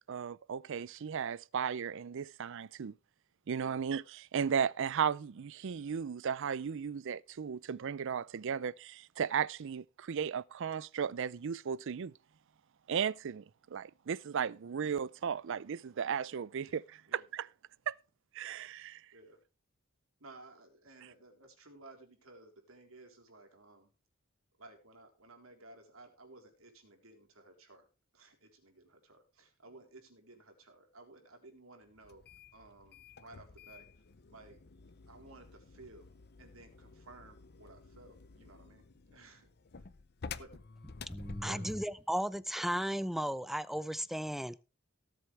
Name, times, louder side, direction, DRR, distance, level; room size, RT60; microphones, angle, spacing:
voice 1, 0.1-2.9 3.5-12.1 12.9-17.5 17.9-18.0 18.3-19.0, right 7 dB, 65° right, 0.5 m, -35 dB
voice 2, 20.2-23.9 24.6-27.9 28.1-32.3 32.5-34.0 34.3-34.6 35.1-36.1 36.4-39.5 40.4-40.5 41.4-41.6, right 2 dB, 85° right, 3.6 m, -56 dB
sound 1, 32.0-41.9, left 4 dB, 50° left, 0.7 m, -50 dB
voice 3, 41.1-44.6, equal, ahead, 0.5 m, -35 dB
18.0 x 7.9 x 3.3 m
head